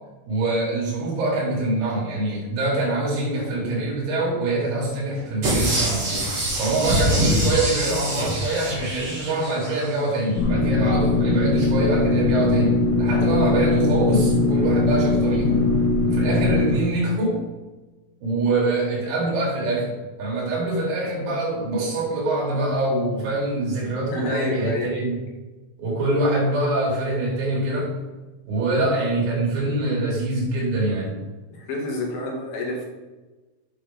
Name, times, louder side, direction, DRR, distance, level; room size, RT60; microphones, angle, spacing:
voice 1, 0.3-6.1 6.6-15.7 16.1-17.4 18.2-25.2 25.8-27.9 28.5-31.2, right 2 dB, 80° right, -4 dB, 5.9 m, -24 dB
sound 1, 5.4-9.9 10.3-10.4, right 1 dB, 40° right, 2.4 m, -24 dB
sound 2, 10.4-16.8, left 3 dB, 75° left, 3.9 m, -20 dB
voice 2, 24.1-24.9 31.5-32.9, left 2 dB, 55° left, -2 dB, 3.4 m, -29 dB
8.9 x 8.5 x 3.7 m, 1.2 s
omnidirectional pair, 6.0 m